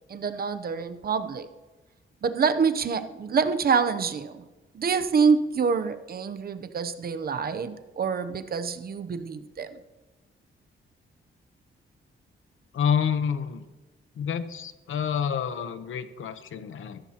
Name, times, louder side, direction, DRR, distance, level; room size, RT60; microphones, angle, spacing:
voice 1, 0.1-1.5 2.2-4.4 4.7-9.8, right 5 dB, 50° right, 10 dB, 0.7 m, -26 dB
voice 2, 12.7-13.6 14.2-17.0, left 7 dB, 80° left, 11 dB, 0.9 m, -28 dB
15.5 x 14.5 x 2.9 m, 1.2 s
wide cardioid pair, 135°, 20 cm